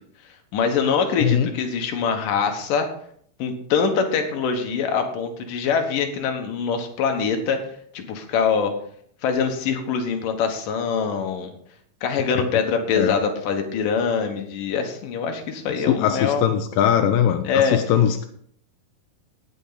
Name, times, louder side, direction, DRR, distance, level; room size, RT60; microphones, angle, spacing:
voice 1, 0.5-2.9 3.4-7.6 7.9-8.7 9.2-11.5 12.0-16.5 17.4-17.8, left 6 dB, 75° left, 4 dB, 3.0 m, -23 dB
voice 2, 1.2-1.5 12.4-12.5 13.0-13.2 15.8-18.3, left 9 dB, 90° left, 6 dB, 2.4 m, -21 dB
18.0 x 7.0 x 4.0 m, 0.64 s
omnidirectional pair, 4.0 m